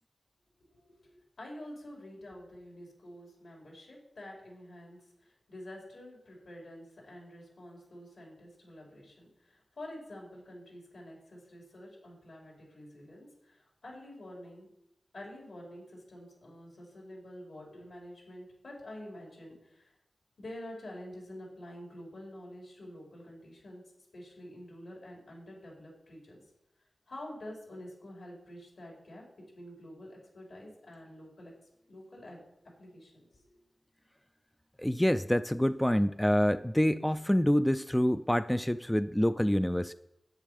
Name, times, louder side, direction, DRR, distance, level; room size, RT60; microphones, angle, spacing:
voice 1, 0.6-14.7 15.1-19.9 20.4-23.8 24.1-26.4 27.1-29.2 29.5-31.5 31.9-32.4 32.8-33.6, left 1 dB, 75° left, -3 dB, 4.9 m, -48 dB
voice 2, 34.8-39.9, equal, 5° left, 12 dB, 0.3 m, -27 dB
10.5 x 9.1 x 5.0 m, 0.83 s
wide cardioid pair, 95°, 0 cm